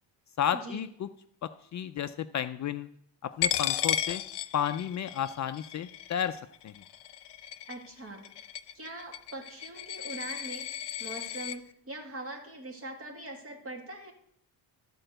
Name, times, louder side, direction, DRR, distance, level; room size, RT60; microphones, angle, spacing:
voice 1, 0.4-1.1 1.4-2.9 3.2-4.2 4.5-6.8, left 9 dB, 45° left, 9 dB, 0.4 m, -32 dB
Coin (dropping), 3.4-11.6, left 11 dB, 75° left, 0.8 m, -34 dB
voice 2, 7.7-14.1, right 2 dB, 30° right, 2 dB, 2.2 m, -42 dB
13.5 x 4.5 x 7.8 m, 0.70 s
cardioid pair, 145°, 41 cm